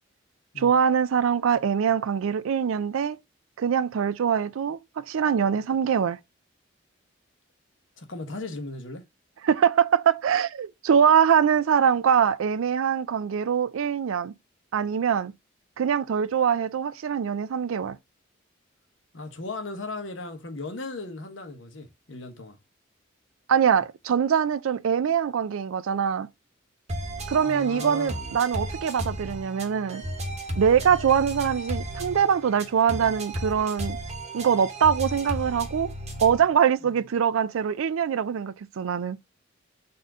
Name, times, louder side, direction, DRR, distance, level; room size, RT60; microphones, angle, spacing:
voice 1, 0.6-3.2 3.6-6.2 9.4-14.3 14.7-15.3 15.8-18.0 23.5-26.3 27.3-30.0 30.6-34.0 34.3-35.9 36.2-39.2, right 7 dB, 80° right, 0.4 m, -23 dB
voice 2, 8.0-9.0 19.1-22.6 27.4-28.3 30.9-31.0, left 3 dB, 65° left, 1.1 m, -37 dB
sound 1, 26.9-36.5, right 1 dB, 30° right, 0.9 m, -34 dB
4.2 x 2.6 x 4.7 m
head